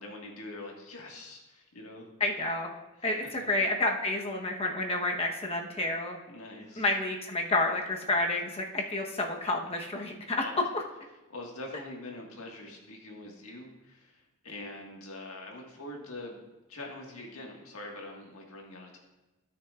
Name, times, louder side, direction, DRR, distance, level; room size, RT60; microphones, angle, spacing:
voice 1, 0.0-2.1 3.0-3.1 6.3-6.9 10.4-10.6 11.3-16.4 16.7-19.0, left 2 dB, 70° left, 0 dB, 1.7 m, -44 dB
voice 2, 2.2-2.7 3.0-6.2 6.8-10.4, left 2 dB, 25° left, 1 dB, 1.0 m, -30 dB
16.0 x 6.5 x 2.4 m, 1.1 s
head